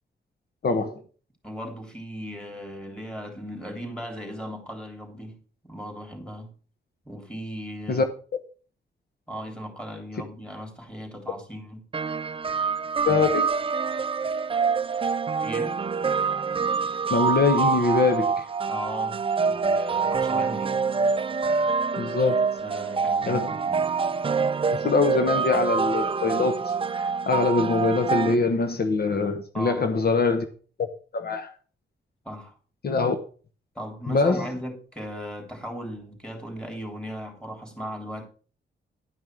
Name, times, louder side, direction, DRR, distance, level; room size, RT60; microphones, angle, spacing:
voice 1, 0.6-1.0 7.9-8.0 13.0-13.5 17.1-18.4 22.0-22.5 23.3-23.5 24.8-30.4 30.8-31.5 32.8-33.2 34.1-34.5, left 4 dB, 55° left, 1.1 m, -23 dB
voice 2, 1.4-5.4 5.6-6.5 7.1-8.0 9.3-11.8 15.4-15.8 18.7-21.0 22.6-23.8 29.5-29.9 32.3-32.5 33.8-38.2, equal, 5° left, 3.4 m, -37 dB
sound 1, 11.9-28.4, right 5 dB, 30° right, 0.4 m, -26 dB
11.5 x 5.4 x 6.2 m
wide cardioid pair, 100°, 19 cm